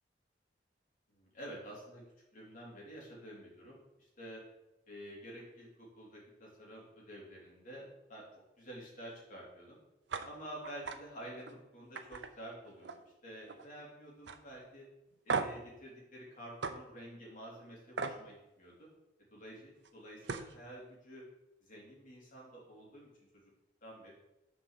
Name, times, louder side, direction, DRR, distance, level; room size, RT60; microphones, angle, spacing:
voice 1, 1.1-2.0 2.3-4.4 4.9-5.7 5.9-8.2 8.6-9.8 10.2-12.9 13.2-14.8 15.2-18.9 19.3-21.2 21.6-23.1 23.8-24.1, right 1 dB, 45° left, -4 dB, 3.2 m, -49 dB
sound 1, 10.1-10.3 10.6-11.0 11.4-11.5 12.0-13.1 13.4-13.8 14.3-14.4 15.3-15.7 16.6-16.8 18.0-18.2 19.8-19.9 20.2-20.5, right 4 dB, 75° right, 0.7 m, -37 dB
7.1 x 5.2 x 6.4 m, 0.95 s
head